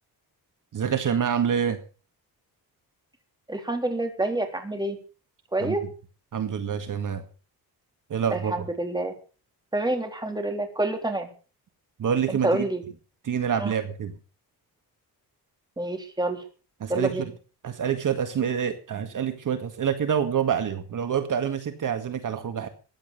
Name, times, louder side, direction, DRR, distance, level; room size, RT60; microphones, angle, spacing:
voice 1, 0.7-1.8 5.6-5.8 6.3-7.2 8.1-8.5 12.0-12.6 13.2-14.2 16.8-17.2 17.6-22.7, right 8 dB, 55° right, 8 dB, 2.0 m, -26 dB
voice 2, 3.5-5.0 5.5-5.8 8.3-9.1 9.7-11.3 12.3-12.8 13.6-13.7 15.8-16.4 16.9-17.3, right 2 dB, 10° right, 4 dB, 3.6 m, -27 dB
15.5 x 10.5 x 6.7 m, 0.38 s
cardioid pair, 125°, 38 cm